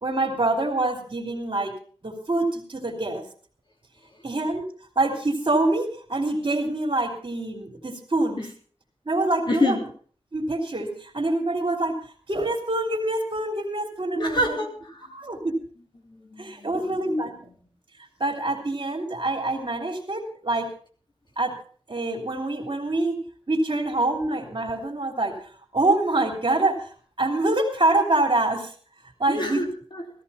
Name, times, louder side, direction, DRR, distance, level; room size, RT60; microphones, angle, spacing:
voice 1, 0.0-1.7 2.0-3.2 4.2-4.6 5.0-8.4 9.1-9.8 10.3-14.6 15.1-15.6 16.4-17.3 18.0-20.7 21.4-21.6 21.9-23.2 23.5-28.7 29.2-29.6, right 2 dB, 55° right, 4 dB, 2.9 m, -25 dB
voice 2, 9.5-9.8 14.1-15.1 16.0-17.4 29.3-30.1, left 2 dB, 50° left, 2 dB, 3.0 m, -28 dB
15.5 x 14.5 x 4.1 m, 0.44 s
wide cardioid pair, 90°, 10 cm